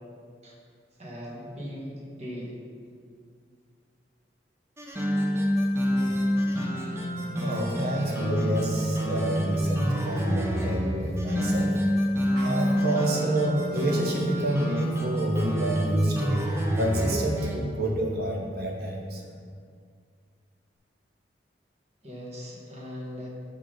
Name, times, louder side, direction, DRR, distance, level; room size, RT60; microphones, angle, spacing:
voice 1, 1.0-2.5 22.0-23.3, equal, 40° right, -4 dB, 1.3 m, -39 dB
sound 1, 4.8-17.6, equal, 15° right, 0.5 m, -28 dB
sound 2, 5.9-6.8 7.2-7.4 7.8-8.3 8.9-9.9 10.8-11.2, left 1 dB, 40° left, 0.6 m, -46 dB
voice 2, 7.3-11.8 12.3-19.2, right 1 dB, 60° right, 0 dB, 0.9 m, -28 dB
5.8 x 3.7 x 5.0 m, 2.2 s
head